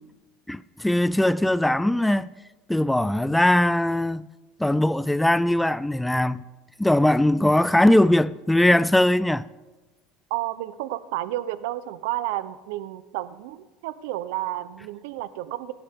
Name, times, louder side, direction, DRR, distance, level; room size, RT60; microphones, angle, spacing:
voice 1, 0.5-2.3 2.7-4.2 4.6-6.4 6.8-9.4, left 1 dB, 5° left, 0.4 m, -20 dB
voice 2, 10.3-15.7, right 14 dB, 80° right, 0.9 m, -31 dB
27.0 x 11.5 x 3.7 m
supercardioid pair, 130°, 0 cm